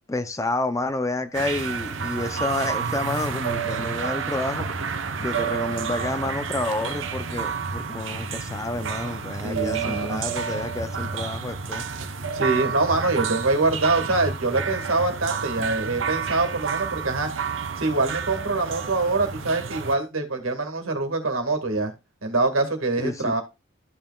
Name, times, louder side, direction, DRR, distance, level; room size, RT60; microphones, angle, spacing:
voice 1, 0.1-4.7 5.2-11.9 23.0-23.4, left 2 dB, 15° left, 0.5 m, -29 dB
sound 1, 1.3-19.9, right 6 dB, 65° right, 0.8 m, -30 dB
voice 2, 9.4-10.2 12.3-17.3 17.8-21.9 22.2-23.4, right 3 dB, 85° right, 1.8 m, -24 dB
13.5 x 5.6 x 2.3 m
head